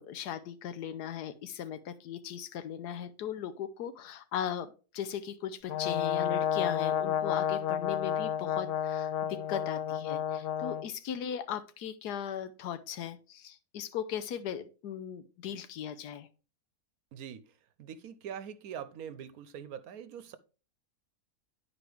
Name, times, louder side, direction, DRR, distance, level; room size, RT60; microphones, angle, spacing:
voice 1, 0.0-16.3, left 9 dB, 90° left, 1.3 m, -38 dB
Brass instrument, 5.7-10.9, left 10 dB, 70° left, 0.8 m, -31 dB
voice 2, 17.1-20.4, right 8 dB, 70° right, 1.1 m, -43 dB
10.0 x 4.8 x 3.4 m
omnidirectional pair, 1.7 m